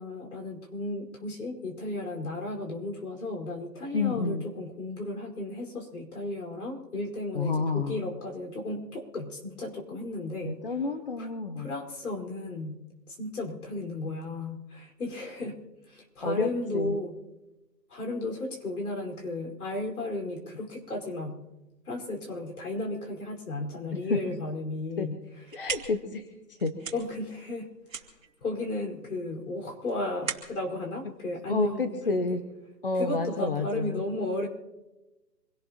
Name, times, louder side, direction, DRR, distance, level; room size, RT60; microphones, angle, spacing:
voice 1, 0.0-10.6 11.2-11.3 11.6-12.8 13.1-15.6 15.9-17.2 17.9-21.4 21.8-25.2 25.5-25.7 26.9-28.1 28.4-32.2 32.9-34.5, left 2 dB, 60° left, 1 dB, 5.1 m, -34 dB
voice 2, 3.9-4.4 7.3-8.0 10.4-11.7 16.2-16.9 24.1-24.2 25.0-25.1 25.5-26.3 26.6-26.9 31.5-32.4 32.8-34.0, left 3 dB, 35° left, 8 dB, 0.9 m, -29 dB
sound 1, 25.2-32.1, right 6 dB, 50° right, 2.6 m, -41 dB
26.5 x 17.5 x 3.0 m, 1.0 s
hypercardioid pair, 165°, 50 cm